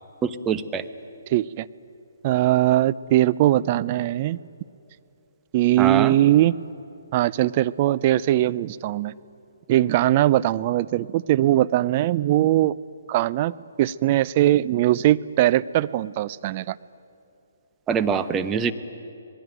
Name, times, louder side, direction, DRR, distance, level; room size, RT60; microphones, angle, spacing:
voice 1, 0.2-0.8 5.8-6.1 17.9-18.7, right 7 dB, 15° right, 10 dB, 1.0 m, -24 dB
voice 2, 1.3-1.7 2.2-4.4 5.5-6.6 7.1-9.1 9.7-12.8 13.1-16.8, right 14 dB, 35° right, 17 dB, 0.5 m, -20 dB
27.0 x 20.5 x 9.2 m, 2.6 s
hypercardioid pair, 145°, 0 cm